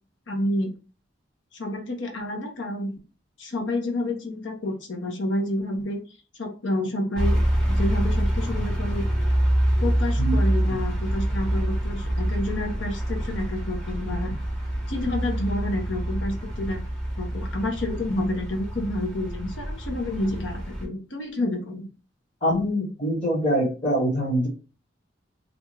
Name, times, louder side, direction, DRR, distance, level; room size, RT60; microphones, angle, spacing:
voice 1, 0.3-0.7 1.5-3.0 3.4-6.0 6.4-7.4 7.7-9.0 9.8-14.3 14.9-16.8 17.2-21.9, left 1 dB, 70° left, 3 dB, 0.7 m, -29 dB
sound 1, 7.1-20.9, right 1 dB, 5° left, 0.7 m, -26 dB
voice 2, 22.4-24.5, equal, 30° left, -5 dB, 0.9 m, -24 dB
2.6 x 2.2 x 3.1 m, 0.33 s
head